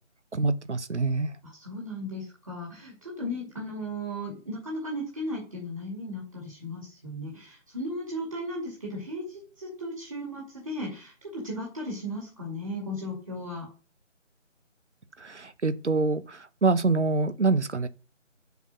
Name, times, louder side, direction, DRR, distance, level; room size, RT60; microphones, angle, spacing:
voice 1, 0.3-1.3 15.2-17.9, right 3 dB, 65° right, 0.9 m, -26 dB
voice 2, 1.4-13.7, equal, 25° right, 2.3 m, -36 dB
7.2 x 5.9 x 6.1 m
figure-of-eight pair, 165°, 37 cm